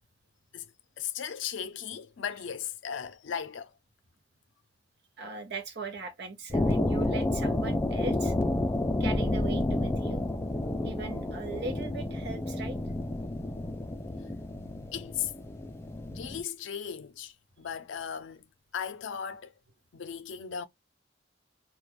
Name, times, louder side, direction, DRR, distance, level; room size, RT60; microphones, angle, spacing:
voice 1, 0.5-3.7 14.5-15.3 16.1-18.5 18.7-19.5 19.9-20.7, left 8 dB, 90° left, 0.5 m, -37 dB
voice 2, 5.2-8.3 9.0-10.2 10.8-12.8, right 4 dB, 65° right, 0.8 m, -39 dB
sound 1, 6.5-16.4, left 1 dB, 15° left, 0.3 m, -30 dB
2.4 x 2.2 x 3.0 m
head